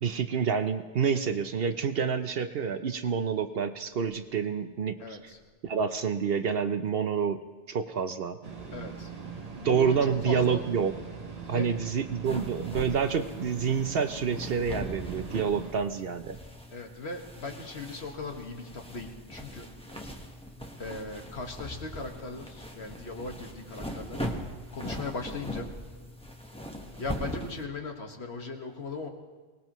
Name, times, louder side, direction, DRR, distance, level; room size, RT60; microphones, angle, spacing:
voice 1, 0.0-5.2 5.6-7.4 7.7-8.4 9.6-10.9 11.5-16.4, right 6 dB, 60° right, 9 dB, 0.8 m, -28 dB
voice 2, 5.0-5.4 8.7-10.6 11.4-11.8 16.7-19.7 20.8-24.2 24.7-25.7 27.0-29.1, left 3 dB, 60° left, 3 dB, 1.8 m, -38 dB
sound 1, 8.4-15.7, right 5 dB, 35° right, 1.1 m, -41 dB
sound 2, 12.2-27.6, equal, 5° left, 1.1 m, -40 dB
23.5 x 18.5 x 3.1 m, 1.3 s
omnidirectional pair, 1.2 m